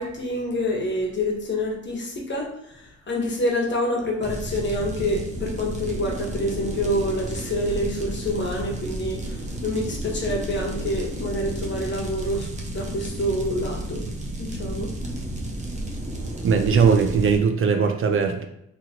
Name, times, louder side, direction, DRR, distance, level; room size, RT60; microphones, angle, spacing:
voice 1, 0.0-14.0 14.4-14.9, left 1 dB, 40° left, 0 dB, 1.1 m, -27 dB
sound 1, 4.2-17.4, right 1 dB, 25° right, 0.8 m, -32 dB
voice 2, 16.4-18.5, right 5 dB, 45° right, 5 dB, 0.4 m, -19 dB
3.6 x 3.0 x 2.9 m, 0.78 s
cardioid pair, 90°, 30 cm